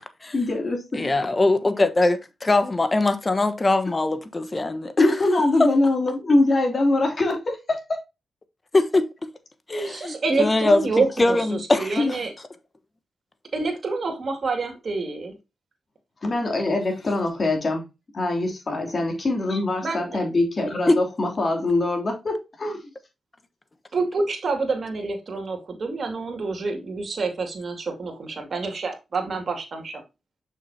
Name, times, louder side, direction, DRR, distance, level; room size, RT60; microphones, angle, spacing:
voice 1, 0.3-1.3 5.0-7.8 9.7-9.9 16.2-17.8 18.1-22.8, left 2 dB, 50° left, 3.0 m, -23 dB
voice 2, 0.9-5.1 8.7-9.1 9.7-12.2 20.9-21.0, left 2 dB, 35° left, 1.2 m, -22 dB
voice 3, 9.9-12.3 13.5-15.4 19.8-20.2 20.6-20.7 23.9-30.0, right 3 dB, 60° right, 2.3 m, -27 dB
6.5 x 6.1 x 2.8 m
cardioid pair, 55°, 0 cm